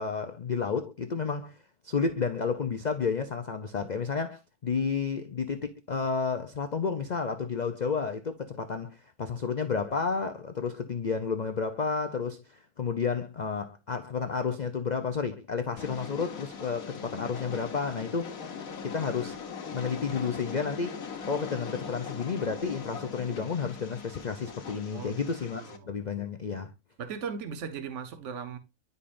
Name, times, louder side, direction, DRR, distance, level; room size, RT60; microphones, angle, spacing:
voice 1, 0.0-1.6 1.8-18.4 18.8-19.4 19.7-26.7, left 5 dB, 85° left, 0.4 m, -31 dB
Train, 15.8-25.8, left 6 dB, 65° left, 1.5 m, -41 dB
voice 2, 25.5-25.9 27.0-28.6, right 6 dB, 55° right, 1.3 m, -38 dB
10.0 x 5.4 x 2.5 m
omnidirectional pair, 1.6 m